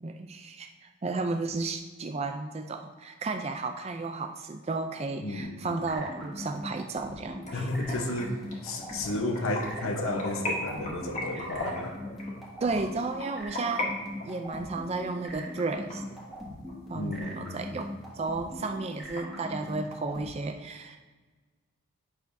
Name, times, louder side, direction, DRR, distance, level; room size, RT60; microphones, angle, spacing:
voice 1, 0.0-7.7 11.4-11.5 12.6-13.9 14.2-16.0 16.9-21.0, right 3 dB, 30° right, 5 dB, 0.4 m, -33 dB
voice 2, 5.2-5.7 7.5-8.3 8.6-11.9 16.9-17.7, left 1 dB, 70° left, 4 dB, 1.0 m, -33 dB
sound 1, 5.4-20.2, equal, ahead, 1.7 m, -41 dB
sound 2, 7.4-13.9 14.2-16.7 17.1-17.2 17.6-17.7 18.1-18.2 18.4-19.2, left 1 dB, 35° left, 1.7 m, -37 dB
9.5 x 6.6 x 2.7 m, 1.4 s
head